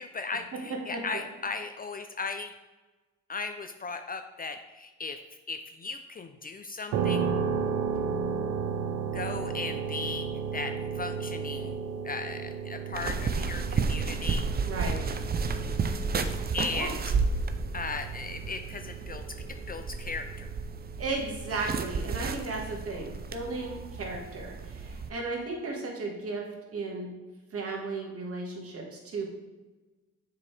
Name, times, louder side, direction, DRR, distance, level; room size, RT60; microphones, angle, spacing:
voice 1, 0.0-2.5 3.3-5.2 5.5-7.3 9.1-11.8 12.0-14.5 16.5-17.1 17.7-20.5, left 4 dB, 30° left, 7 dB, 0.4 m, -37 dB
sound 1, 6.9-21.6, right 6 dB, 90° right, 0.6 m, -34 dB
sound 2, 12.9-25.1, right 4 dB, 30° right, 0.5 m, -32 dB
voice 2, 14.6-15.0 16.7-16.9 21.0-26.4 26.7-27.1 27.5-29.3, right 3 dB, 50° right, 0 dB, 1.7 m, -35 dB
6.8 x 4.8 x 3.3 m, 1.2 s
cardioid pair, 90°, 30 cm